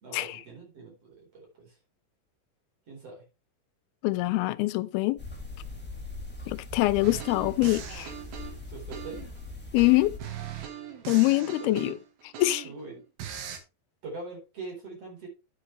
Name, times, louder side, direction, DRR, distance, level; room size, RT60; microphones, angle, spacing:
voice 1, 0.0-1.7 2.9-3.2 8.7-9.2 11.6-12.0 12.6-13.0 14.0-15.3, right 3 dB, 40° right, 5.3 m, -42 dB
voice 2, 4.0-5.2 6.5-8.1 9.7-10.1 11.1-12.0 12.4-12.7, left 19 dB, 90° left, 2.5 m, -24 dB
sound 1, 5.2-10.2, left 2 dB, 5° left, 2.1 m, -41 dB
sound 2, 7.0-9.4 9.8-12.8 13.2-13.6, right 9 dB, 75° right, 3.4 m, -40 dB
9.9 x 8.7 x 3.3 m
omnidirectional pair, 4.3 m